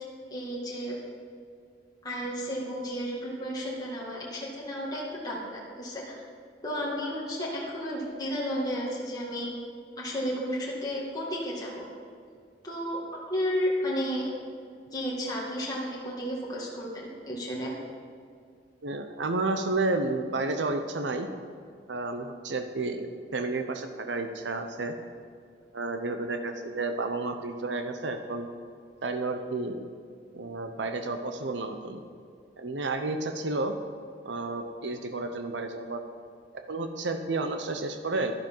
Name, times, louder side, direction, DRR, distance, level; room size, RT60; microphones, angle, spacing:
voice 1, 0.3-1.0 2.0-6.2 6.6-9.5 10.0-11.8 12.6-13.0 13.3-14.2 14.9-17.7, equal, 20° left, -5 dB, 2.1 m, -32 dB
voice 2, 18.8-21.3 21.9-24.9 25.7-28.5 29.0-29.8 30.3-32.0 32.6-33.7 34.2-36.0 36.7-38.3, right 3 dB, 70° right, 6 dB, 0.8 m, -31 dB
12.0 x 11.5 x 4.6 m, 2.3 s
head